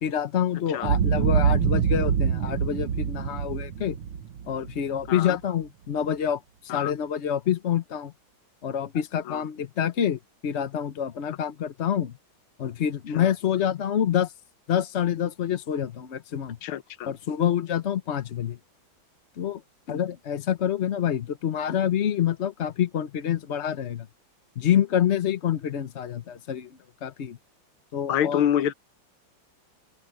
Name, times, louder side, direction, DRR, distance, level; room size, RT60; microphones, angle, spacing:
voice 1, 0.0-4.0 4.5-8.1 8.6-12.1 12.6-14.3 14.7-16.6 17.0-18.6 19.4-19.6 19.9-24.1 24.6-26.7 27.0-27.4 27.9-28.4, left 9 dB, 55° left, 0.7 m, -27 dB
Boom, 0.8-5.1, right 7 dB, 90° right, 2.0 m, -25 dB
voice 2, 5.1-5.4 6.7-6.9 9.3-9.4 13.1-13.3 16.6-17.1 28.1-28.7, left 10 dB, 85° left, 1.7 m, -27 dB
open air
omnidirectional pair, 2.3 m